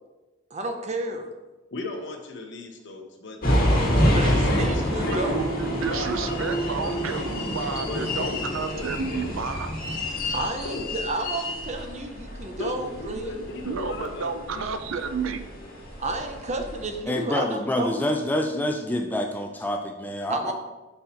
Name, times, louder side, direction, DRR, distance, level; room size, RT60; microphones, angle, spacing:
voice 1, 0.5-1.3 3.8-3.9 4.1-5.4 10.3-13.4 16.0-18.0 20.3-20.5, right 2 dB, 35° right, 5 dB, 0.6 m, -31 dB
voice 2, 1.7-5.3 5.9-7.0 7.8-8.4 8.7-9.3 10.6-10.8 12.6-14.7, left 3 dB, 65° left, 3 dB, 0.9 m, -36 dB
sound 1, 3.4-17.0, equal, 45° left, 1.6 m, -27 dB
voice 3, 5.0-9.7 13.6-15.5, right 5 dB, 75° right, 9 dB, 0.5 m, -31 dB
sound 2, 8.6-17.1, equal, 15° right, 1.3 m, -44 dB
voice 4, 17.1-20.5, left 1 dB, 10° left, 4 dB, 0.3 m, -27 dB
5.6 x 4.4 x 4.3 m, 1.1 s
head